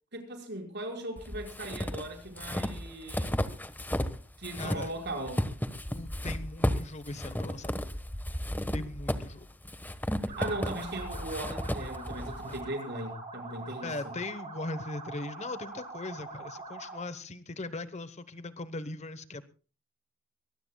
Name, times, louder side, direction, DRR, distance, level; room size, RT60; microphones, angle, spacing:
voice 1, 0.1-3.3 4.4-5.5 10.4-14.1, right 1 dB, 55° right, 5.4 m, -38 dB
sound 1, 1.2-4.2 4.4-12.6, equal, 10° left, 1.3 m, -34 dB
voice 2, 4.5-4.9 5.9-7.7 8.7-9.5 13.8-19.4, left 2 dB, 35° left, 1.0 m, -39 dB
sound 2, 10.3-17.1, right 3 dB, 30° right, 5.5 m, -43 dB
23.5 x 20.0 x 2.3 m
head